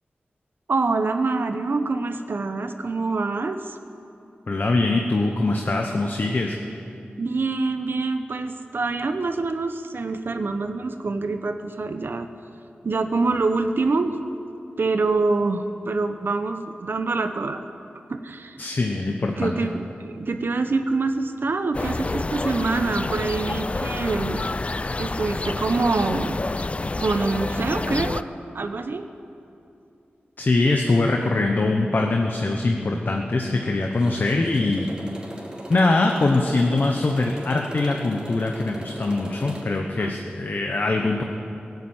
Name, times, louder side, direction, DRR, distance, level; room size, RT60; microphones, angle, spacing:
voice 1, 0.7-3.8 7.2-12.3 12.8-14.2 14.8-17.6 18.1-18.6 19.4-24.4 25.0-26.4 27.0-28.2 28.5-29.0 40.0-40.1, right 3 dB, 65° right, 8 dB, 0.8 m, -25 dB
voice 2, 4.5-6.5 18.6-19.5 30.4-34.9 35.7-41.2, left 2 dB, 55° left, 2 dB, 1.1 m, -22 dB
sound 1, 21.7-28.2, left 2 dB, 35° left, 0.4 m, -28 dB
Motorcycle, 33.9-39.8, right 1 dB, 25° right, 2.7 m, -38 dB
17.0 x 8.2 x 9.0 m, 2.6 s
wide cardioid pair, 70°, 4 cm